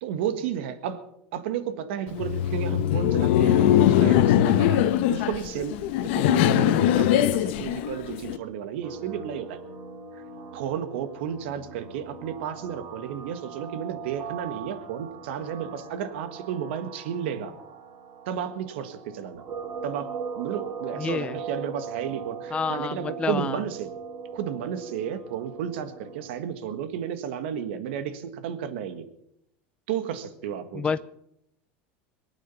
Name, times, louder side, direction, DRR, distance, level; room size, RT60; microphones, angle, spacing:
voice 1, 0.0-1.1 1.3-5.8 6.0-9.6 10.1-10.2 10.5-17.5 18.3-19.4 19.8-23.9 24.3-29.1 29.9-30.9, right 8 dB, 80° right, 11 dB, 1.7 m, -32 dB
Laughter, 2.1-8.4, left 11 dB, 75° left, 1.1 m, -21 dB
sound 1, 8.8-26.4, right 6 dB, 45° right, 4.9 m, -40 dB
voice 2, 21.0-21.4 22.5-23.6 30.7-31.0, left 5 dB, 20° left, 11 dB, 0.5 m, -28 dB
22.5 x 9.1 x 7.0 m, 0.76 s
supercardioid pair, 125°, 6 cm